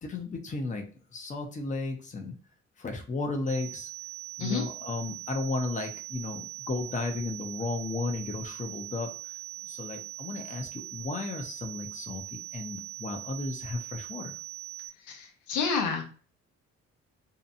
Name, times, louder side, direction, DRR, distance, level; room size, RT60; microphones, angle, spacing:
voice 1, 0.0-2.4 2.8-3.9 4.4-9.1 9.6-14.3, left 3 dB, 25° left, 3 dB, 0.6 m, -34 dB
sound 1, 3.5-14.9, right 14 dB, 60° left, 0.9 m, -41 dB
voice 2, 15.1-16.0, left 5 dB, 90° left, 2 dB, 0.7 m, -29 dB
2.8 x 2.2 x 2.6 m, 0.39 s
cardioid pair, 90°, 30 cm